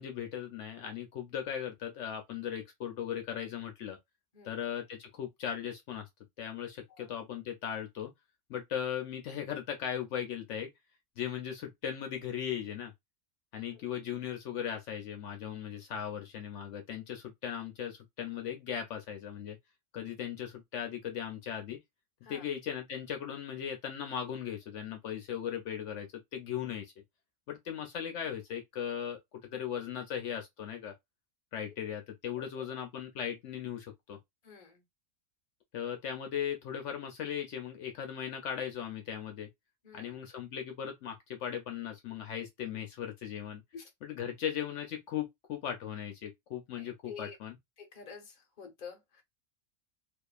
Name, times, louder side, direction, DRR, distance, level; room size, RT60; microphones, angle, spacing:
voice 1, 0.0-4.0 4.4-6.1 6.4-8.1 8.5-10.7 11.2-12.9 13.5-19.6 19.9-21.8 22.3-26.9 27.5-29.2 29.5-30.9 31.5-34.2 35.7-39.5 39.9-43.6 44.0-47.5, left 9 dB, 75° left, 0.9 m, -38 dB
voice 2, 4.3-4.6 6.9-7.1 13.7-13.8 22.2-22.5 32.6-32.7 34.4-34.8 39.8-40.2 43.7-43.9 46.7-47.4 47.8-49.2, left 5 dB, 40° left, 1.0 m, -49 dB
2.6 x 2.4 x 2.3 m
omnidirectional pair, 1.3 m